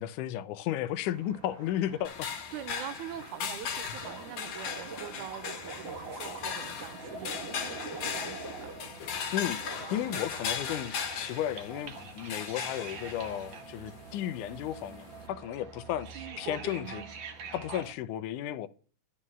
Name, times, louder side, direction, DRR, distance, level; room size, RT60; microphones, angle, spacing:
voice 1, 0.0-2.3 9.3-17.0 17.5-18.7, left 11 dB, 85° left, 2.2 m, -34 dB
sound 1, 1.0-17.9, right 5 dB, 50° right, 1.6 m, -48 dB
sound 2, 2.0-15.3, left 7 dB, 65° left, 2.6 m, -38 dB
voice 2, 2.5-8.7 10.1-10.2 16.1-17.1, right 11 dB, 85° right, 2.3 m, -44 dB
sound 3, 4.0-9.3 9.6-10.3 10.7-11.5, right 2 dB, 30° right, 1.1 m, -43 dB
11.5 x 5.5 x 7.3 m
omnidirectional pair, 3.5 m